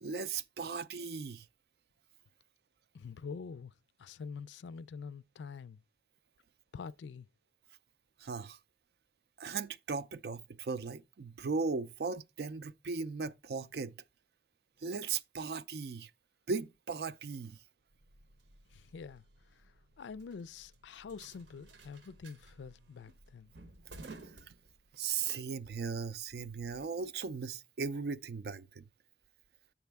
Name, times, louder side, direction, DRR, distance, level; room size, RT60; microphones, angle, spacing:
voice 1, 0.0-1.5 8.2-8.6 9.4-14.0 14.8-16.1 16.5-17.6 24.0-24.2 24.5-24.6 24.9-28.8, right 5 dB, 60° right, 0.4 m, -37 dB
voice 2, 2.9-3.7 4.0-5.8 6.7-7.3 18.7-19.2 19.5-19.6 20.0-23.5, left 5 dB, 85° left, 0.4 m, -46 dB
sound 1, 17.9-25.2, right 2 dB, 85° right, 1.0 m, -56 dB
8.3 x 6.1 x 3.4 m
head